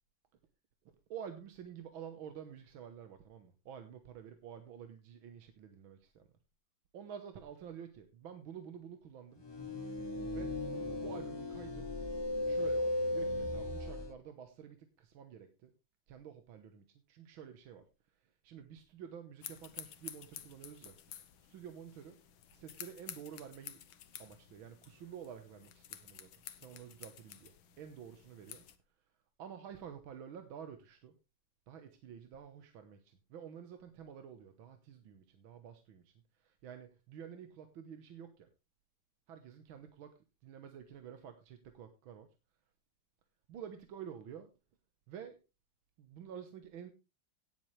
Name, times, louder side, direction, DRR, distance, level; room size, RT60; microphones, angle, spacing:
voice 1, 1.1-6.3 6.9-9.4 10.3-10.5 10.9-11.9 12.4-15.7 16.1-17.9 18.1-21.0 21.4-22.2 22.5-23.8 24.2-26.3 26.6-28.6 29.4-31.1 31.7-38.5 39.3-40.1 40.4-42.3 43.5-44.5 45.1-45.4 46.0-46.9, right 8 dB, 80° right, 8 dB, 1.9 m, -50 dB
sound 1, 9.4-14.1, left 2 dB, 25° left, 0.5 m, -36 dB
sound 2, 19.4-28.8, left 10 dB, 80° left, 1.8 m, -51 dB
18.0 x 7.5 x 3.2 m, 0.27 s
omnidirectional pair, 2.2 m